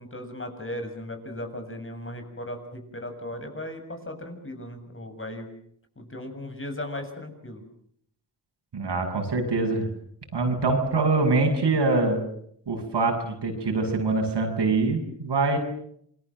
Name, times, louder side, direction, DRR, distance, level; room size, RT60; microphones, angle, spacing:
voice 1, 0.0-5.5 6.0-7.6, left 1 dB, 30° left, 5 dB, 7.5 m, -37 dB
voice 2, 8.7-9.9 10.3-12.2 12.7-15.6, right 3 dB, 70° right, 4 dB, 7.2 m, -24 dB
27.5 x 21.5 x 7.6 m, 0.68 s
cardioid pair, 65°, 43 cm